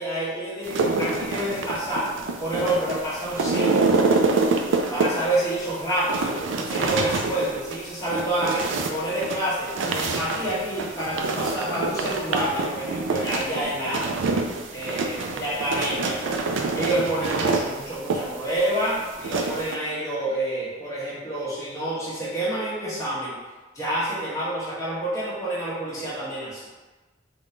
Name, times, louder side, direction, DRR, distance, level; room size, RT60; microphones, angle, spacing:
voice 1, 0.0-2.1 2.4-3.9 4.9-6.4 6.6-14.1 14.7-16.2 16.7-23.4 23.7-26.6, right 1 dB, 20° left, -9 dB, 1.1 m, -28 dB
sound 1, 0.6-19.8, right 3 dB, 90° right, 0.4 m, -26 dB
3.6 x 2.2 x 3.7 m, 1.2 s
head